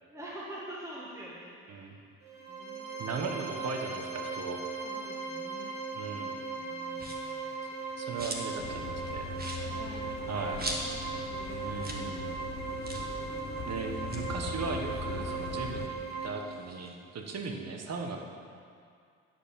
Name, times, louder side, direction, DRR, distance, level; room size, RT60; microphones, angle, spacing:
voice 1, 0.0-2.0 2.5-3.2 4.8-5.8 6.5-7.6 9.7-10.1 10.6-12.0 14.1-14.3 15.2-15.3, right 1 dB, 10° right, -7 dB, 1.7 m, -47 dB
sound 1, 2.2-16.3, right 4 dB, 85° right, 2.6 m, -38 dB
voice 2, 3.0-4.6 5.9-6.4 8.0-9.3 10.3-10.6 11.6-12.3 13.7-18.4, right 4 dB, 50° right, 3 dB, 1.3 m, -37 dB
sound 2, 6.9-7.4 7.8-8.6 8.9-9.0 9.3-11.2 11.5-11.6 11.8-12.1 12.3-12.4 12.8-13.1 13.9-15.6 16.0-17.5, right 1 dB, 30° right, 1.4 m, -41 dB
sound 3, 8.6-15.9, left 6 dB, 55° left, 0.8 m, -41 dB
9.9 x 4.7 x 6.9 m, 2.3 s
supercardioid pair, 75°, 34 cm